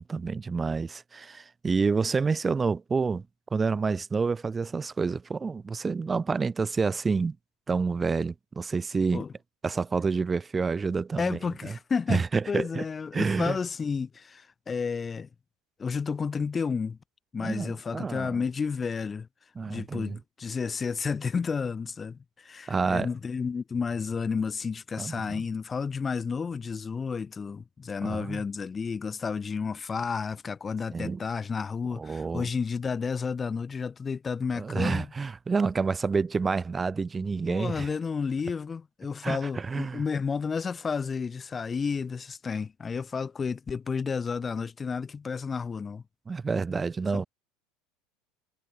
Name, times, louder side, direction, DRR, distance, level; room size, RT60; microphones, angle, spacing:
voice 1, 0.0-3.2 3.5-7.4 7.7-9.2 9.6-11.4 11.7-11.8 12.1-12.8 13.1-13.6 17.4-18.4 19.5-20.2 22.7-23.1 25.0-25.4 28.0-28.4 30.9-31.2 32.0-32.4 34.6-37.9 39.2-40.0 46.3-47.3, right 4 dB, 20° right, 4.8 m, -28 dB
voice 2, 11.2-15.3 15.8-17.0 17.3-19.3 19.7-35.1 37.2-46.0 47.1-47.2, left 5 dB, 25° left, 3.8 m, -31 dB
supercardioid pair, 95°, 0 cm